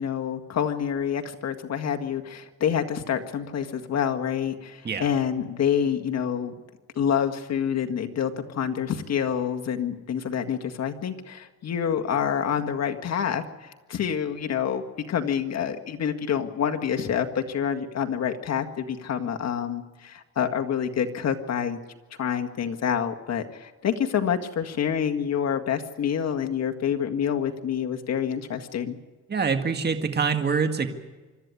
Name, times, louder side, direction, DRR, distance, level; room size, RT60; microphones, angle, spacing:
voice 1, 0.0-6.5 7.0-14.8 15.1-21.8 22.2-29.0, left 8 dB, 60° left, 5 dB, 1.9 m, -27 dB
voice 2, 29.3-30.9, right 5 dB, 35° right, 7 dB, 1.9 m, -25 dB
26.0 x 13.0 x 9.8 m, 1.3 s
cardioid pair, 90°, 30 cm